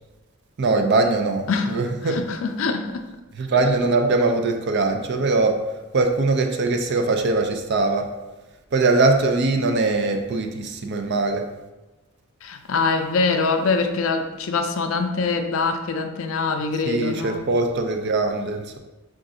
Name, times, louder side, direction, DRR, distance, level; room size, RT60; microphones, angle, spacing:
voice 1, 0.6-2.2 3.4-5.6 5.9-8.1 8.7-11.5 16.8-18.8, right 3 dB, 50° right, 5 dB, 0.4 m, -21 dB
voice 2, 2.0-3.1 12.4-17.4, left 4 dB, 65° left, 6 dB, 0.4 m, -24 dB
5.0 x 2.5 x 3.7 m, 1.1 s
head